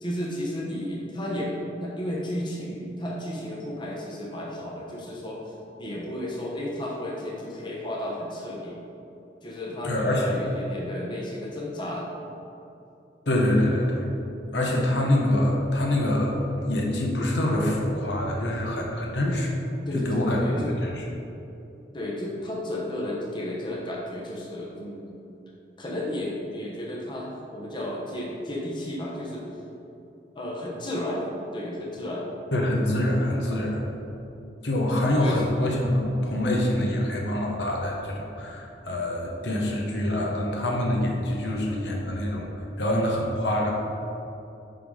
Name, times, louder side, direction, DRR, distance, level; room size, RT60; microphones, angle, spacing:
voice 1, 0.0-8.8 9.4-12.1 19.9-20.7 21.9-25.2 25.8-29.5 30.3-31.2 31.5-32.3 34.8-35.4, left 1 dB, 25° left, -3 dB, 1.0 m, -33 dB
voice 2, 9.8-10.3 13.3-14.0 14.5-16.4 16.7-19.5 19.9-20.4 20.8-21.0 32.5-33.8 34.6-43.7, left 1 dB, 65° left, -1 dB, 1.0 m, -25 dB
5.8 x 5.4 x 4.9 m, 2.9 s
head